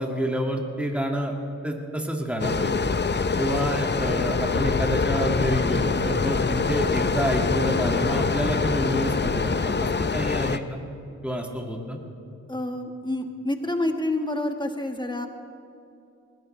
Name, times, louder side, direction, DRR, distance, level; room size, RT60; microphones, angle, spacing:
voice 1, 0.0-1.3 1.6-2.7 3.4-10.8 11.2-12.0, equal, 5° right, 1 dB, 2.1 m, -28 dB
sound 1, 2.4-10.6, left 4 dB, 35° left, 0.6 m, -24 dB
voice 2, 12.5-15.3, left 1 dB, 15° left, 5 dB, 1.6 m, -28 dB
21.0 x 15.5 x 3.3 m, 2.6 s
cardioid pair, 45°, 31 cm